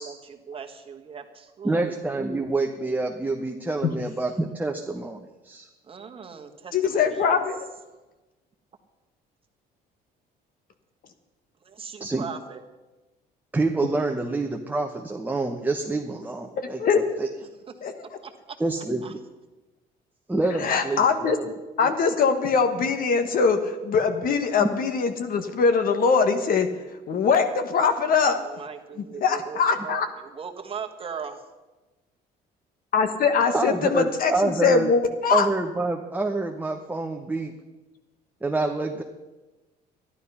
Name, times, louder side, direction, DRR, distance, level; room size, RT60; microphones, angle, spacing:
voice 1, 0.0-2.0 5.8-7.4 11.6-12.6 17.4-18.6 19.0-19.1 28.4-31.4, right 6 dB, 35° right, 3 dB, 1.5 m, -39 dB
voice 2, 1.6-5.7 12.0-12.2 13.5-17.3 18.6-19.2 20.3-21.5 21.8-21.9 24.6-24.7 33.5-34.9 35.3-37.5 38.4-39.0, right 2 dB, 10° right, 1 dB, 1.0 m, -27 dB
voice 3, 6.7-7.6 16.8-17.0 17.8-17.9 20.6-21.4 21.8-26.7 27.1-28.4 29.2-30.1 32.9-35.4, left 5 dB, 55° left, 8 dB, 1.5 m, -22 dB
13.0 x 11.5 x 5.7 m, 1.1 s
cardioid pair, 110°, 17 cm